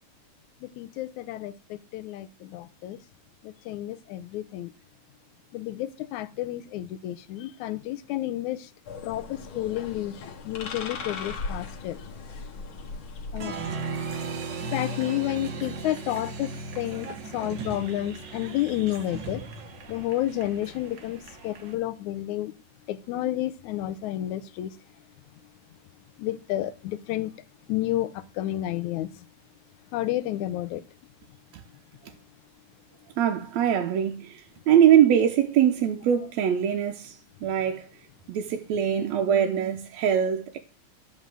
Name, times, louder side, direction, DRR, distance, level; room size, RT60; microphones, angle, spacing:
voice 1, 0.6-3.0 3.4-4.7 5.5-8.7 9.0-12.1 13.3-13.5 14.7-19.4 19.9-22.5 22.9-24.7 26.2-27.3 27.7-29.1 29.9-30.8, left 14 dB, 85° left, 2.1 m, -31 dB
sound 1, 8.8-14.2, left 4 dB, 55° left, 1.9 m, -38 dB
Applause, 13.4-21.7, right 3 dB, 50° right, 1.6 m, -37 dB
voice 2, 33.2-34.4 34.7-37.9 38.3-40.6, right 9 dB, 70° right, 2.0 m, -22 dB
11.5 x 5.4 x 7.5 m
omnidirectional pair, 3.3 m